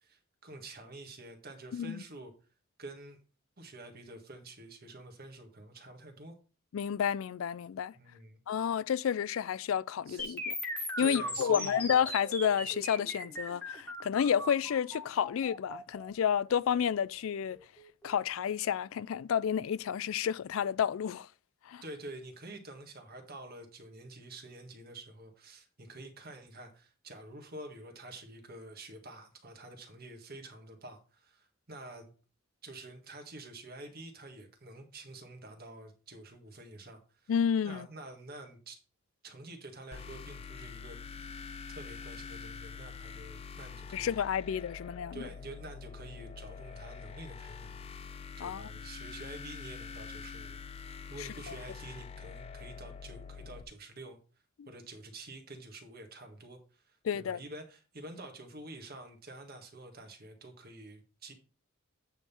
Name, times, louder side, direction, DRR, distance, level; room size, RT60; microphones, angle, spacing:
voice 1, 0.0-2.3 2.8-3.2 3.6-6.3 7.9-8.4 10.1-10.4 11.0-12.0 21.8-32.1 32.6-37.3 37.6-38.8 39.2-41.0 41.3-44.2 45.1-47.9 48.4-54.2 54.6-61.3, right 2 dB, 50° right, 1.7 m, -48 dB
voice 2, 1.7-2.0 6.7-7.9 8.5-10.5 11.0-17.6 18.0-21.3 21.7-21.8 37.3-37.9 43.9-45.2 48.4-48.6 51.2-51.5 57.0-57.4, left 8 dB, 80° left, 0.4 m, -30 dB
sound 1, 10.2-18.1, left 1 dB, 10° left, 1.6 m, -39 dB
sound 2, 39.9-53.6, left 6 dB, 30° left, 0.5 m, -45 dB
9.0 x 3.6 x 5.7 m
head